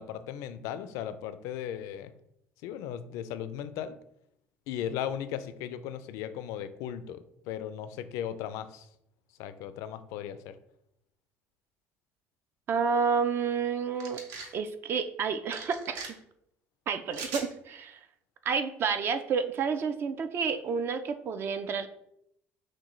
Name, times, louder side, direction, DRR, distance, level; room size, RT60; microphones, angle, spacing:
voice 1, 0.0-2.1 2.6-4.0 4.7-8.9 9.4-10.5, left 9 dB, 80° left, 12 dB, 0.3 m, -37 dB
voice 2, 12.7-14.2 14.5-16.1 16.9-18.0 18.4-21.9, right 5 dB, 45° right, 9 dB, 0.4 m, -30 dB
sound 1, 14.0-14.5 15.5-16.1 17.1-17.5, right 4 dB, 80° right, 0.8 m, -40 dB
6.0 x 2.2 x 3.1 m, 0.77 s
cardioid pair, 110°, 5 cm